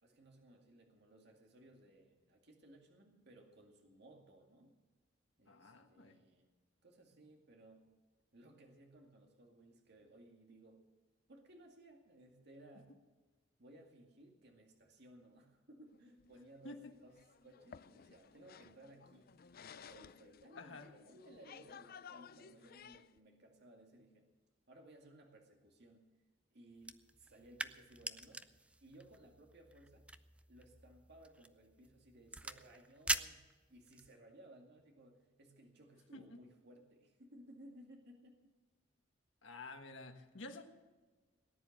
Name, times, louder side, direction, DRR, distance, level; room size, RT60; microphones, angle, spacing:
voice 1, 0.0-4.7 5.4-6.5 6.8-7.9 8.3-10.8 11.3-12.9 13.6-19.3 19.8-24.3 24.7-26.1 26.5-28.5 28.8-30.1 30.5-38.5, right 1 dB, 60° right, 2 dB, 2.2 m, -60 dB
voice 2, 5.5-6.2 16.6-16.9 20.5-20.9 36.1-36.4 39.4-40.6, left 3 dB, 90° left, 5 dB, 1.6 m, -51 dB
sound 1, 15.9-23.2, left 7 dB, 50° left, 0.5 m, -57 dB
sound 2, 26.8-34.1, right 2 dB, 5° right, 0.5 m, -45 dB
18.5 x 10.0 x 6.6 m, 1.3 s
head